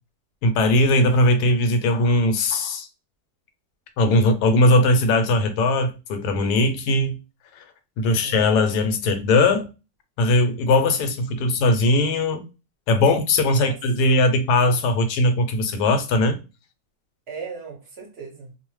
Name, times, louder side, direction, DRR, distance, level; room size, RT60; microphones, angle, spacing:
voice 1, 0.4-2.9 4.0-7.2 7.6-7.7 8.0-9.7 10.2-12.4 12.9-16.4, left 2 dB, 85° left, 1.1 m, -19 dB
voice 2, 8.0-8.5 13.5-13.8 17.3-18.5, right 4 dB, 50° right, 0.9 m, -37 dB
2.6 x 2.0 x 3.0 m
omnidirectional pair, 1.7 m